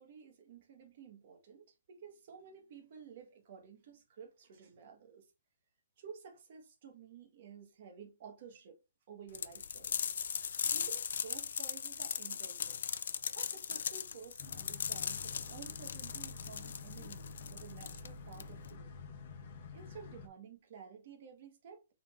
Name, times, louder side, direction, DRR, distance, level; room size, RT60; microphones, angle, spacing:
voice 1, 0.0-5.3 6.0-8.8 9.1-12.8 13.3-18.9 19.7-21.9, right 6 dB, 50° right, 1.5 m, -53 dB
sound 1, 9.3-18.7, left 7 dB, 70° left, 0.4 m, -38 dB
sound 2, 14.4-20.3, left 4 dB, 45° left, 0.9 m, -49 dB
4.1 x 4.0 x 2.6 m
hypercardioid pair, 160°, 0 cm